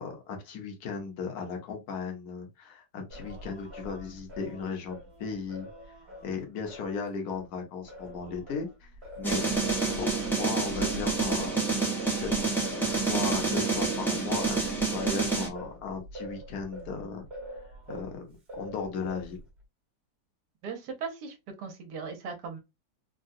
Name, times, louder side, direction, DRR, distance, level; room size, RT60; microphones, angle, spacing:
voice 1, 0.0-6.0 6.2-8.9 9.2-11.6 12.2-12.5 12.8-17.2 17.5-19.4, left 5 dB, 65° left, 1.3 m, -37 dB
Singing, 3.1-7.5 7.9-18.2 18.5-19.5, equal, 40° right, 1.2 m, -44 dB
sound 1, 9.2-15.5, right 4 dB, ahead, 0.5 m, -28 dB
voice 2, 20.6-22.6, right 5 dB, 75° right, 1.4 m, -38 dB
3.7 x 2.2 x 2.5 m
omnidirectional pair, 1.9 m